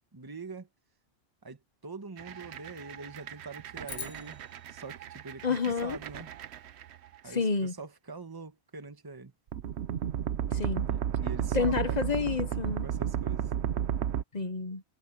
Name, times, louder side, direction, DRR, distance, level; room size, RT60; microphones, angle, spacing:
voice 1, 0.1-0.7 1.4-4.4 4.7-6.3 7.2-9.3 10.9-12.3 12.8-13.5, right 4 dB, 20° right, 1.3 m, -44 dB
sound 1, 2.2-7.2 9.5-14.2, right 9 dB, 85° right, 1.0 m, -33 dB
sound 2, 3.9-6.3, left 5 dB, 80° left, 1.9 m, -46 dB
voice 2, 5.4-6.0 7.3-7.7 10.5-10.8 11.5-12.8 14.3-14.8, left 5 dB, 45° left, 1.0 m, -29 dB
omnidirectional pair, 1.1 m